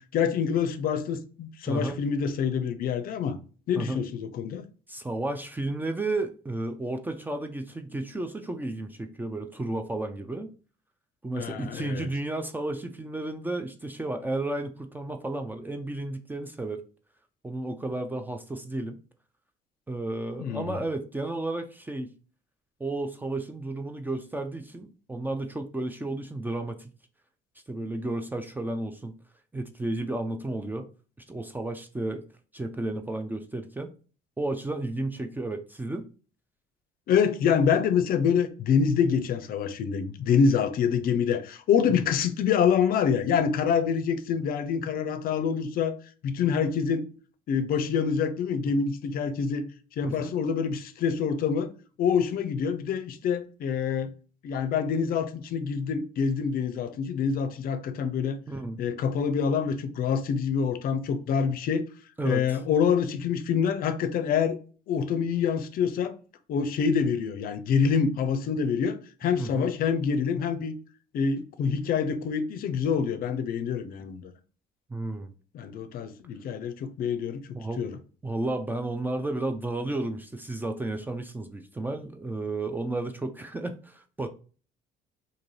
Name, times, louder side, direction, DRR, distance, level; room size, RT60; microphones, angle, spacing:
voice 1, 0.0-3.4 3.7-4.6 11.4-12.1 20.4-20.7 37.1-45.9 46.2-47.0 47.5-49.6 50.0-51.7 52.0-54.1 54.4-58.4 58.8-61.8 62.2-64.6 64.9-66.2 66.5-70.8 71.1-74.3 75.5-77.4 77.8-78.0, left 6 dB, 60° left, 0.5 m, -26 dB
voice 2, 1.7-2.0 3.7-4.0 4.9-10.5 11.2-16.8 17.4-19.0 19.9-22.1 22.8-26.9 27.7-29.1 29.5-30.9 31.3-32.2 32.5-33.9 34.4-36.1 50.0-50.3 58.5-58.8 62.2-62.6 69.4-69.7 74.9-75.3 77.5-77.8 78.2-84.3, right 2 dB, 10° right, 0.3 m, -32 dB
2.6 x 2.5 x 3.1 m
cardioid pair, 110°, 17 cm